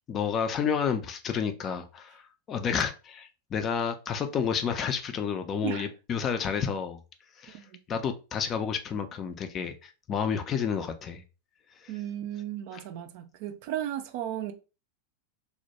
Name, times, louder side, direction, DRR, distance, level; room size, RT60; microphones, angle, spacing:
voice 1, 0.1-2.2 2.5-7.0 7.4-7.6 7.9-11.2 11.8-11.9, left 7 dB, 30° left, 0.3 m, -30 dB
voice 2, 7.5-7.8 11.9-14.5, right 11 dB, 45° right, 0.3 m, -35 dB
2.2 x 2.1 x 2.8 m
figure-of-eight pair, 90°, 0 cm